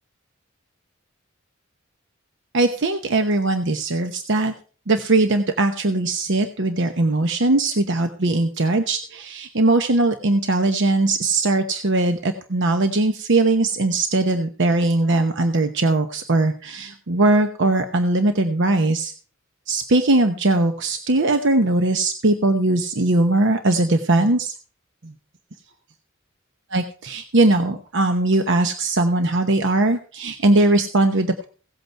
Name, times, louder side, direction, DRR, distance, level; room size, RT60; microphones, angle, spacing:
voice 1, 2.5-4.5 4.9-19.1 19.7-24.5 25.0-25.1 26.7-31.4, right 2 dB, 60° right, 7 dB, 0.9 m, -20 dB
16.5 x 8.1 x 4.5 m, 0.39 s
head